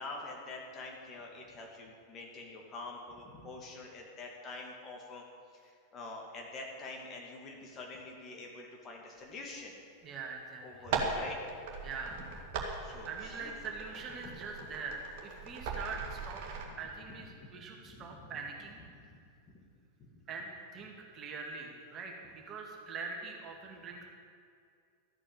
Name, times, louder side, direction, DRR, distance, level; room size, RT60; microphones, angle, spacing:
voice 1, 0.0-5.2 5.5-9.8 10.6-11.4 12.2-12.3 12.8-13.5 17.3-17.5 17.8-18.3 19.1-19.2 19.5-19.6 20.0-20.2, left 3 dB, 30° left, 0 dB, 2.6 m, -46 dB
voice 2, 10.0-10.9 11.8-12.2 12.8-16.4 16.8-19.3 20.3-24.0, right 4 dB, 30° right, 1 dB, 2.2 m, -43 dB
fader automation piezo, 10.7-16.7, right 4 dB, 45° right, 2.4 m, -39 dB
13.5 x 8.7 x 8.6 m, 2.3 s
figure-of-eight pair, 90°, 0 cm